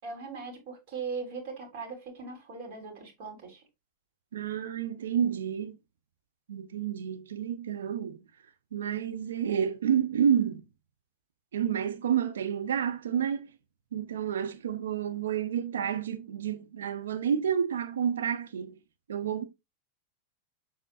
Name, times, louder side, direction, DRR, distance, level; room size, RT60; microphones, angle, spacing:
voice 1, 0.0-3.6, right 5 dB, 50° right, 3.7 m, -39 dB
voice 2, 4.3-5.8 6.5-8.2 8.7-10.6 11.5-13.5 13.9-18.8 19.1-19.4, right 8 dB, 65° right, 0.7 m, -29 dB
7.5 x 7.3 x 2.5 m
figure-of-eight pair, 90°, 0 cm